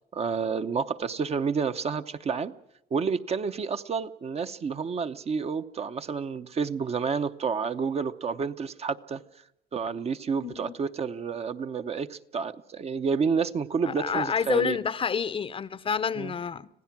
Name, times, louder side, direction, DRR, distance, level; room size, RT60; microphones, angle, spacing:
voice 1, 0.1-2.5 2.9-9.2 9.7-14.8 16.2-16.3, right 5 dB, 40° right, 0.9 m, -29 dB
voice 2, 10.4-10.8 13.8-16.7, left 6 dB, 30° left, 0.7 m, -28 dB
26.0 x 16.5 x 6.0 m
cardioid pair, 110°, 17 cm